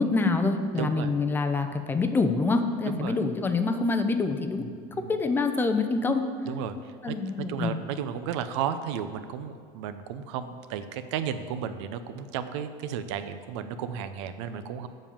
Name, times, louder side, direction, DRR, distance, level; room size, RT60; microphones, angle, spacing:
voice 1, 0.0-4.6 5.1-6.2 7.0-7.8, left 3 dB, 15° left, 7 dB, 0.5 m, -26 dB
voice 2, 0.7-1.1 2.9-3.2 4.6-5.2 6.5-14.9, right 8 dB, 85° right, 10 dB, 0.6 m, -34 dB
7.4 x 5.4 x 7.1 m, 2.2 s
cardioid pair, 150°, 14 cm